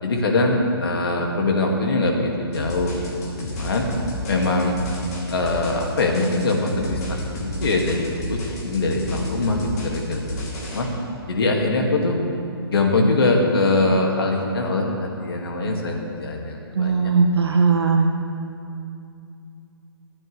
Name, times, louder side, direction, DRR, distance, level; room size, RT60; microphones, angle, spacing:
voice 1, 0.0-3.9 4.3-4.8 5.3-10.9 11.3-12.2 12.7-17.1, left 2 dB, 65° left, 1 dB, 2.1 m, -22 dB
sound 1, 2.5-10.8, left 1 dB, 35° left, 2.8 m, -32 dB
voice 2, 16.7-18.1, right 4 dB, 75° right, 2 dB, 1.7 m, -18 dB
25.5 x 8.9 x 3.3 m, 2.6 s
hypercardioid pair, 170°, 13 cm